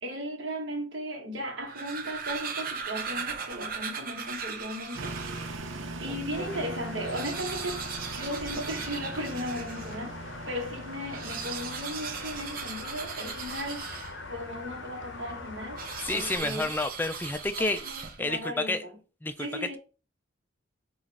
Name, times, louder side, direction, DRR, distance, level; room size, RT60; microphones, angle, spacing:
voice 1, 0.0-5.1 6.0-7.8 8.1-10.2 10.5-13.8 14.3-15.8 16.1-16.7 17.6-18.9 19.4-19.8, equal, 65° right, 1.3 m, -36 dB
sound 1, 1.5-5.6 6.2-6.3 6.5-6.6 6.9-10.0 11.0-14.4 15.7-18.4, right 6 dB, 45° right, 0.7 m, -38 dB
sound 2, 5.0-17.7, right 2 dB, 85° right, 0.7 m, -43 dB
sound 3, 6.3-16.4, left 3 dB, 65° left, 0.7 m, -42 dB
voice 2, 16.0-17.8 18.2-18.9 19.2-19.8, left 2 dB, 10° left, 0.3 m, -30 dB
5.1 x 2.4 x 4.1 m
head